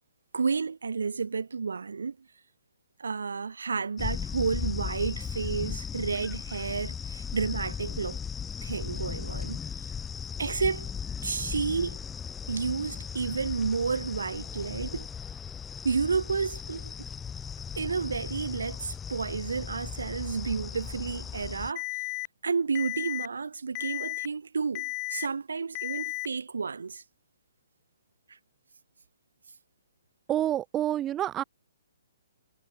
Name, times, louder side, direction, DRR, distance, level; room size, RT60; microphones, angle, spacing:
voice 1, 0.3-2.2 3.0-8.2 8.6-9.6 10.4-10.9 11.2-12.0 12.5-15.1 15.8-16.9 17.8-21.9 22.4-27.0 28.3-28.4, right 5 dB, 65° right, 2.3 m, -31 dB
sound 1, 4.0-21.7, left 6 dB, 10° left, 3.4 m, -37 dB
Alarm, 21.8-22.3 22.8-23.3 23.8-24.3 24.8-25.3 25.8-26.3, left 26 dB, 25° left, 3.7 m, -34 dB
voice 2, 30.3-31.4, right 12 dB, 20° right, 2.6 m, -28 dB
figure-of-eight pair, 125°, 0 cm